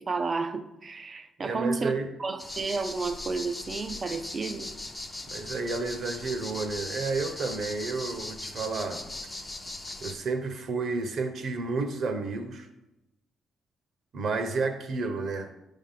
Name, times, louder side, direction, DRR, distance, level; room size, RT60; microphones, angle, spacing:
voice 1, 0.0-1.9 2.2-4.7, right 4 dB, 25° right, 0.5 m, -31 dB
voice 2, 1.4-2.1 5.3-9.0 10.0-12.7 14.1-15.5, right 3 dB, 45° right, 0.9 m, -31 dB
sound 1, 2.4-10.1, left 2 dB, 10° left, 0.7 m, -39 dB
10.5 x 3.6 x 5.7 m
cardioid pair, 170°, 0 cm